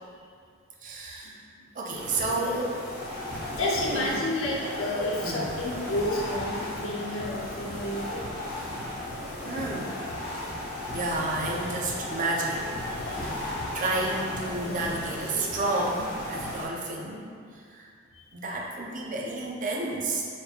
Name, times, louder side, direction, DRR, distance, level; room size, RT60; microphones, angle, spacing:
voice 1, 0.8-1.4 1.7-2.6 3.3-4.1 5.2-5.5 9.4-10.0 10.9-12.7 13.0-13.4 13.7-17.3 17.5-17.9 18.3-20.2, right 2 dB, 35° right, -2 dB, 0.4 m, -31 dB
sound 1, 1.9-16.6, left 1 dB, 45° left, 0.9 m, -35 dB
voice 2, 3.5-8.2 12.9-13.2, left 1 dB, 70° left, -4 dB, 0.7 m, -30 dB
4.3 x 2.8 x 2.4 m, 2.1 s
head